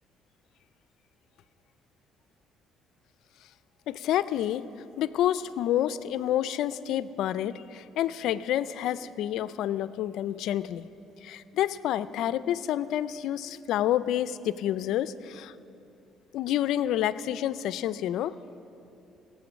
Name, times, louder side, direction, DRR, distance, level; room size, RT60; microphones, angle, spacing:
voice 1, 3.9-4.7 5.0-10.9 11.2-15.5 16.3-18.3, left 12 dB, 75° left, 16 dB, 0.3 m, -28 dB
17.5 x 7.6 x 6.2 m, 2.8 s
cardioid pair, 95°, 0 cm